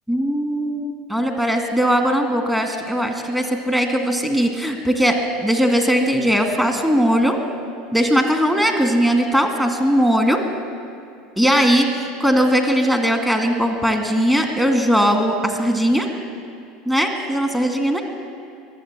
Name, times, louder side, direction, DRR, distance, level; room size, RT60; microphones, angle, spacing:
voice 1, 0.1-7.4 7.9-10.4 11.4-16.1 16.9-18.0, equal, 10° right, 4 dB, 2.1 m, -19 dB
22.5 x 8.0 x 7.5 m, 2.4 s
figure-of-eight pair, 75°, 0 cm